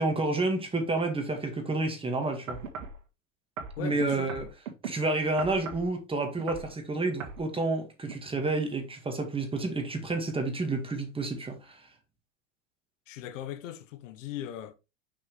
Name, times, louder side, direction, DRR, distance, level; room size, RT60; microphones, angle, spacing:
voice 1, 0.0-2.6 3.8-4.4 4.8-11.9, right 2 dB, 15° right, 1.9 m, -30 dB
sound 1, 2.5-3.0 3.6-4.9 5.4-5.9 6.3-6.7 7.2-7.4 8.0-8.1, right 5 dB, 85° right, 1.8 m, -38 dB
voice 2, 3.8-4.3 13.1-14.7, left 11 dB, 75° left, 1.1 m, -38 dB
5.9 x 5.7 x 3.3 m
hypercardioid pair, 110°, 38 cm